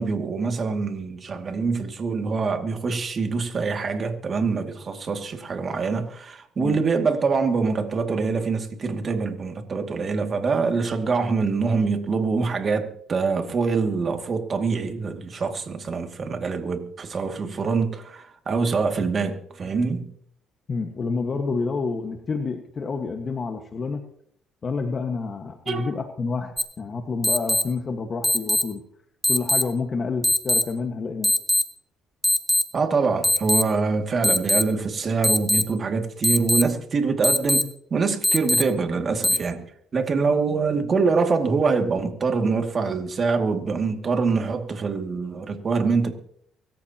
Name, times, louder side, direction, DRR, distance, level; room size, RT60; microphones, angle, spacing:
voice 1, 0.0-20.1 25.7-25.9 32.7-39.6 39.9-46.1, right 4 dB, 40° right, 2.4 m, -25 dB
voice 2, 20.7-24.0 24.6-28.8 29.3-31.3, left 4 dB, 40° left, 1.6 m, -29 dB
sound 1, 26.6-26.7 27.2-27.6 28.2-28.6 29.2-29.6 30.2-30.6 31.2-31.6 32.2-32.6 33.2-33.6 34.2-34.6 35.2-35.6 36.2-36.6 37.2-37.6 38.2-38.6 39.2-39.4, left 1 dB, ahead, 1.4 m, -20 dB
24.5 x 13.5 x 3.0 m
cardioid pair, 95°, 0 cm